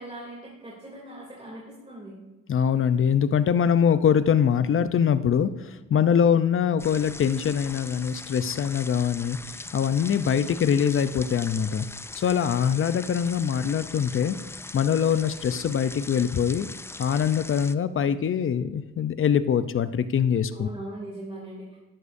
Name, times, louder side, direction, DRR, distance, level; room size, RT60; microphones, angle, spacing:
voice 1, 0.0-2.2 20.5-21.8, right 1 dB, 20° right, -5 dB, 2.9 m, -40 dB
voice 2, 2.5-11.9 12.1-14.4 14.7-16.7 17.0-20.7, left 8 dB, 45° left, 12 dB, 0.7 m, -23 dB
sound 1, 6.8-17.8, left 2 dB, 10° left, 0.3 m, -41 dB
12.5 x 11.0 x 2.7 m, 1.1 s
cardioid pair, 90°, 30 cm